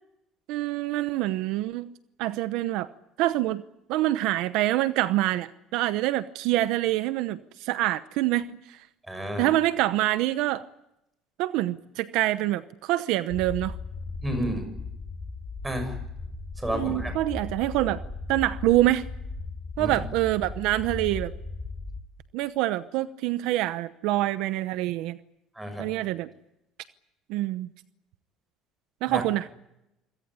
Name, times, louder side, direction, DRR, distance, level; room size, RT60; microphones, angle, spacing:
voice 1, 0.5-1.9 2.2-2.9 3.2-3.6 3.9-8.8 9.4-10.6 11.4-13.8 16.7-18.0 18.3-19.1 19.8-21.3 22.3-25.2 25.8-26.3 27.3-27.7 29.0-29.5, right 15 dB, 70° right, 13 dB, 0.9 m, -26 dB
voice 2, 9.1-9.5 14.2-14.7 15.6-16.0 16.6-17.1 19.8-19.9 25.5-25.9 29.1-29.2, right 1 dB, 10° right, 7 dB, 6.7 m, -31 dB
sound 1, 13.3-22.0, left 3 dB, 20° left, 3.1 m, -37 dB
26.5 x 17.0 x 9.9 m, 0.87 s
cardioid pair, 145°, 0 cm